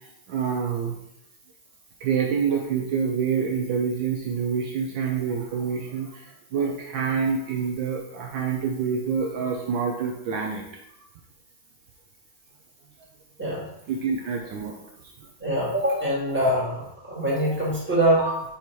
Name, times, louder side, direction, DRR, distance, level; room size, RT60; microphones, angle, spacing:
voice 1, 0.3-1.0 2.0-10.6 13.9-14.7, right 6 dB, 70° right, 1 dB, 1.4 m, -27 dB
voice 2, 15.4-18.4, right 1 dB, 5° right, -6 dB, 1.8 m, -24 dB
5.2 x 4.4 x 4.5 m, 0.80 s
omnidirectional pair, 2.3 m